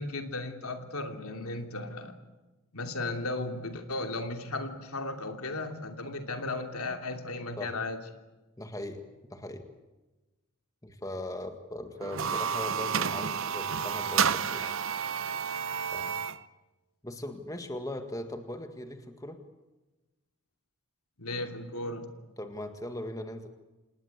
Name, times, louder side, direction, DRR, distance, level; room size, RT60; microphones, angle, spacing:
voice 1, 0.0-2.1 2.7-8.0 21.2-22.1, left 2 dB, 90° left, 6 dB, 2.9 m, -35 dB
voice 2, 8.6-9.0 9.3-9.7 10.8-14.8 15.9-16.2 17.0-19.4 22.4-23.5, left 1 dB, 15° left, 7 dB, 1.8 m, -39 dB
sound 1, 12.0-16.4, right 7 dB, 65° right, 0.8 m, -30 dB
27.5 x 20.0 x 8.4 m, 1.1 s
head